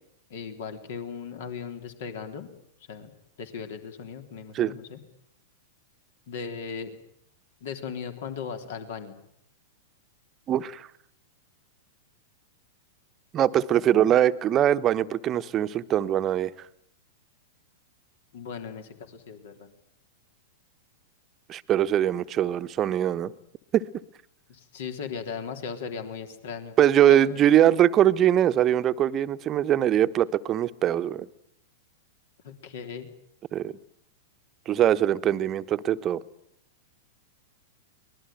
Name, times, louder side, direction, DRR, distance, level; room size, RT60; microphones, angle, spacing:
voice 1, 0.3-2.5 2.9-3.1 3.4-5.0 6.3-7.0 7.6-9.1 18.3-19.7 24.5-26.7 27.1-27.5 32.4-33.1, left 6 dB, 60° left, 7 dB, 3.5 m, -37 dB
voice 2, 10.5-10.9 13.3-16.5 21.5-23.3 23.7-23.8 26.8-31.3 33.5-33.7 34.7-36.2, right 11 dB, 30° right, 13 dB, 1.1 m, -22 dB
24.0 x 20.5 x 9.2 m, 0.72 s
figure-of-eight pair, 100°, 0 cm